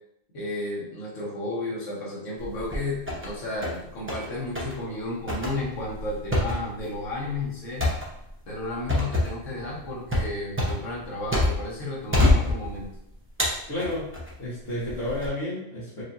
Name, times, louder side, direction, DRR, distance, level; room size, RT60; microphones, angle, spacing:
voice 1, 0.3-7.9 8.5-12.9, left 2 dB, 70° left, -5 dB, 1.5 m, -33 dB
sound 1, 2.4-3.3 3.6-4.3 4.6-4.8 5.3-11.8 12.1-13.0 13.4-14.3 14.9-15.3, left 1 dB, 10° right, 0.7 m, -26 dB
voice 2, 13.7-14.1 14.4-16.0, left 1 dB, 55° left, -13 dB, 1.7 m, -31 dB
4.8 x 2.8 x 2.6 m, 0.77 s
omnidirectional pair, 1.4 m